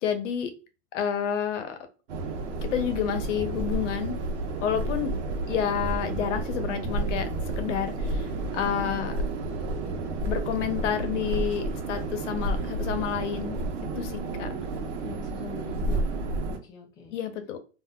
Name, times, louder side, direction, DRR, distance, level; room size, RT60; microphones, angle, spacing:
voice 1, 0.0-0.5 0.9-1.8 2.6-4.2 4.6-5.1 5.5-7.3 7.6-9.2 10.2-13.6 14.0-14.1 14.4-14.5 17.1-17.6, left 9 dB, 85° left, 8 dB, 0.8 m, -29 dB
sound 1, 2.1-16.6, right 2 dB, 80° right, 0.9 m, -31 dB
voice 2, 13.9-14.7 15.0-17.1, left 3 dB, 10° left, -2 dB, 0.3 m, -43 dB
3.6 x 2.5 x 2.2 m, 0.34 s
supercardioid pair, 160°, 35 cm